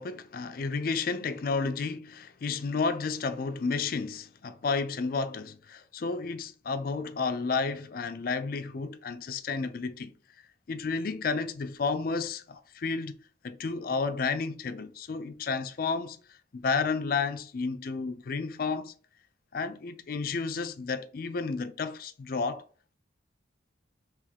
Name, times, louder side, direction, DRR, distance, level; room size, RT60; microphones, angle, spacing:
voice 1, 0.0-2.0 2.4-10.1 10.7-13.2 13.4-16.2 16.5-18.9 19.5-22.6, left 4 dB, 50° left, 0.4 m, -31 dB
3.6 x 3.0 x 3.4 m
head